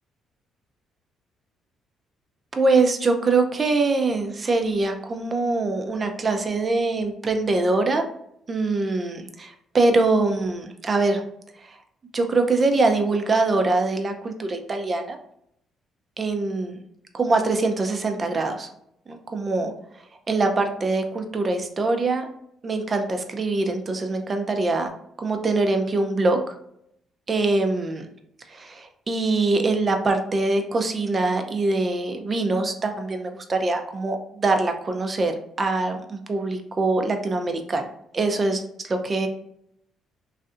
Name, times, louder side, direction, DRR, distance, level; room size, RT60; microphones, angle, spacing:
voice 1, 2.5-8.0 8.5-11.2 11.6-11.8 12.1-15.2 16.2-16.8 17.1-18.7 19.1-19.7 20.3-22.3 22.6-24.9 25.2-26.5 27.3-28.0 28.5-35.3 35.6-37.9 38.1-39.3, right 3 dB, 35° right, 5 dB, 0.6 m, -23 dB
3.2 x 2.6 x 2.5 m, 0.73 s
supercardioid pair, 75°, 0 cm